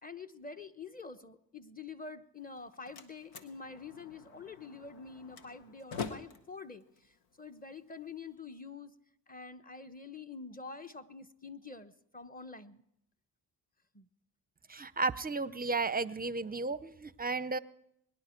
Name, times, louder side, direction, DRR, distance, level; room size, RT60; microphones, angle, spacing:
voice 1, 0.0-8.9 9.3-12.8 13.9-14.1, left 4 dB, 15° left, 9 dB, 1.0 m, -47 dB
Slam, 2.4-8.3, left 5 dB, 90° left, 1.1 m, -46 dB
voice 2, 14.7-17.6, right 3 dB, 20° right, 18 dB, 0.6 m, -33 dB
22.5 x 10.5 x 4.5 m, 0.78 s
supercardioid pair, 45°, 49 cm